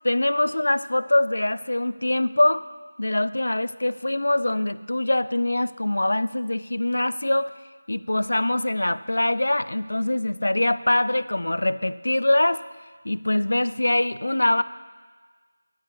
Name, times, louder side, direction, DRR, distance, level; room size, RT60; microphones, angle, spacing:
voice 1, 0.0-2.7 3.0-7.5 7.9-12.6 13.0-14.6, left 1 dB, 80° left, 16 dB, 0.3 m, -23 dB
11.0 x 9.7 x 3.2 m, 1.4 s
figure-of-eight pair, 175°, 0 cm